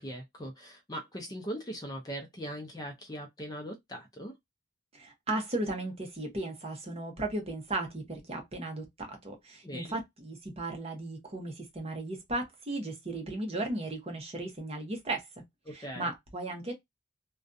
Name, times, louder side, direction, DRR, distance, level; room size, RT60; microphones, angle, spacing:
voice 1, 0.0-4.3 9.6-10.0 15.7-16.1, equal, 20° left, 0.5 m, -40 dB
voice 2, 4.9-15.3 15.7-16.7, right 2 dB, 30° right, 0.7 m, -36 dB
2.5 x 2.2 x 2.5 m
head